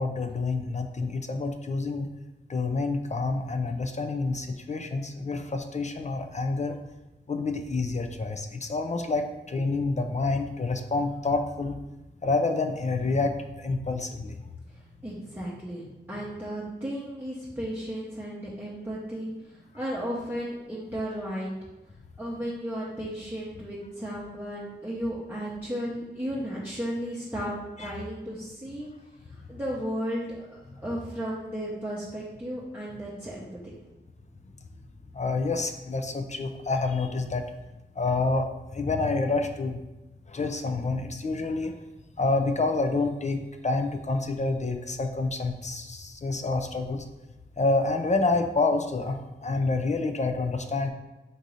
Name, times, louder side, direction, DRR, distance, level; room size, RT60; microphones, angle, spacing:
voice 1, 0.0-2.1 2.5-6.8 7.3-11.8 12.2-14.4 27.8-27.9 35.1-37.4 38.0-38.5 38.7-39.8 40.3-41.8 42.2-47.0 47.6-50.9, left 3 dB, 40° left, 6 dB, 0.4 m, -28 dB
voice 2, 15.0-19.3 19.7-21.6 22.2-27.5 27.8-28.9 29.5-30.5 30.8-33.5, equal, 10° right, -7 dB, 0.9 m, -34 dB
3.9 x 2.7 x 4.7 m, 1.0 s
wide cardioid pair, 65°, 19 cm